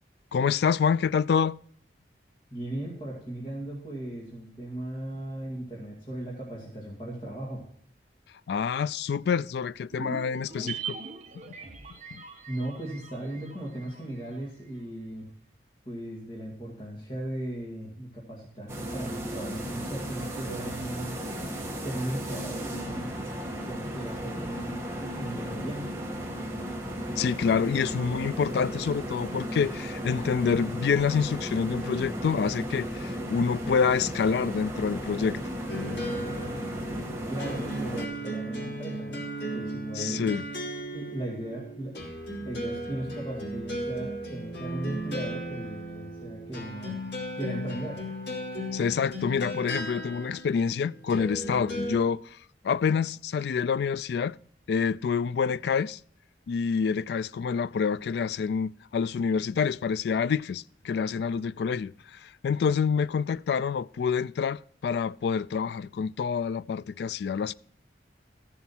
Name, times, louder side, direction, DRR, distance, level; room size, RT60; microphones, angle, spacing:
voice 1, 0.3-1.6 8.5-11.0 11.3-11.5 12.1-12.2 27.2-35.4 39.9-40.4 48.7-52.4 52.6-54.4 54.7-56.0 56.5-67.5, left 6 dB, 65° left, 0.3 m, -27 dB
voice 2, 2.5-7.6 12.5-15.3 15.9-21.1 21.8-23.1 23.7-26.0 37.3-40.3 40.9-41.9 42.4-47.0 47.3-48.0, right 1 dB, 30° left, 2.4 m, -37 dB
sound 1, 9.9-14.4 14.7-14.8, right 5 dB, 40° right, 1.1 m, -41 dB
sound 2, 18.7-38.1, equal, 15° right, 1.4 m, -35 dB
sound 3, 35.7-52.0, equal, 90° left, 3.4 m, -36 dB
14.0 x 7.2 x 4.4 m
head